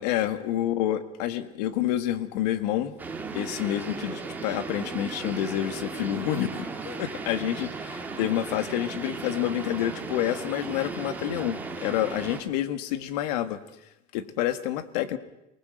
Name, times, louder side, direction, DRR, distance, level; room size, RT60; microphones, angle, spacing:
voice 1, 0.0-3.0 3.3-13.6 14.1-15.2, left 12 dB, 85° left, 12 dB, 1.7 m, -28 dB
sound 1, 3.0-12.4, right 4 dB, 10° right, 1.9 m, -36 dB
28.5 x 19.5 x 7.8 m, 0.91 s
cardioid pair, 175°, 20 cm